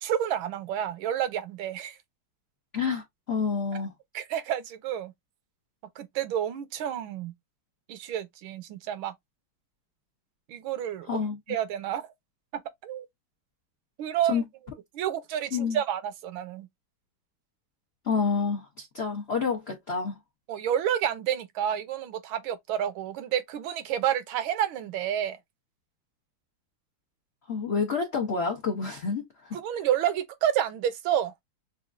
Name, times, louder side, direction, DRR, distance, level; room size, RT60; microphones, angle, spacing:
voice 1, 0.0-2.0 3.7-3.8 4.1-5.1 6.0-7.3 7.9-9.1 10.5-11.2 11.5-12.1 12.8-13.1 14.0-14.4 14.9-16.7 20.5-25.4 29.5-31.4, right 10 dB, 80° right, 1.5 m, -29 dB
voice 2, 2.7-3.9 11.0-11.4 14.3-14.4 15.5-15.8 18.0-20.2 27.5-29.8, left 5 dB, 85° left, 0.5 m, -29 dB
6.1 x 2.4 x 2.4 m
omnidirectional pair, 2.2 m